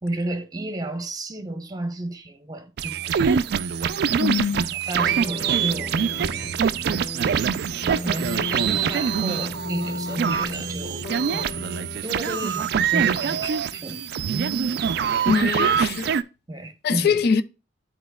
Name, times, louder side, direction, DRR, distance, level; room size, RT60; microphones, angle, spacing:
voice 1, 0.0-3.4 4.7-6.6 7.2-7.5 8.0-11.0 11.3-11.7 12.0-14.0 16.5-17.2, right 2 dB, 20° right, 0.9 m, -32 dB
sound 1, 2.8-16.2, right 7 dB, 60° right, 0.3 m, -24 dB
voice 2, 4.2-4.7 15.2-16.1 16.8-17.4, left 6 dB, 60° left, 0.4 m, -23 dB
sound 2, 5.0-12.0, left 2 dB, 80° left, 1.5 m, -35 dB
11.5 x 4.3 x 2.2 m
head